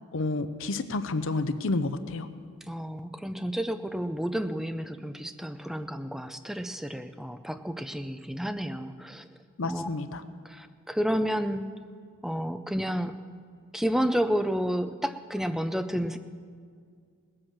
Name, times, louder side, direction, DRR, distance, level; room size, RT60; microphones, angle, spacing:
voice 1, 0.1-2.3 9.6-10.2, left 2 dB, 60° left, 11 dB, 0.6 m, -30 dB
voice 2, 2.6-9.3 9.6-9.9 10.4-11.7 12.2-13.1 13.7-16.2, equal, ahead, 9 dB, 0.4 m, -30 dB
19.0 x 7.7 x 7.4 m, 2.1 s
head